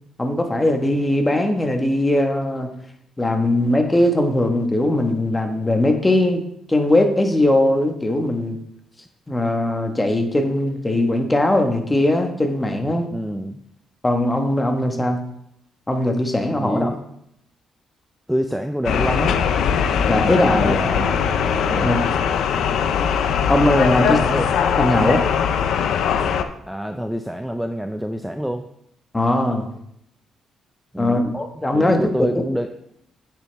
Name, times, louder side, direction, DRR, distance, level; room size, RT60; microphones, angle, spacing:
voice 1, 0.2-2.7 3.2-6.4 6.7-8.6 9.3-13.1 14.0-15.2 15.9-16.9 20.1-20.8 21.8-22.0 23.5-24.2 24.8-25.2 29.1-29.7 31.0-32.4, left 1 dB, 15° left, 5 dB, 1.4 m, -20 dB
voice 2, 13.1-13.6 16.6-17.0 18.3-19.4 20.5-21.1 21.7-22.0 24.0-24.5 26.7-28.6 30.9-31.4 31.7-32.7, equal, 5° right, 7 dB, 0.5 m, -26 dB
sound 1, 18.8-26.4, left 7 dB, 75° left, 0.6 m, -20 dB
8.9 x 7.0 x 3.4 m, 0.76 s
cardioid pair, 90°, 0 cm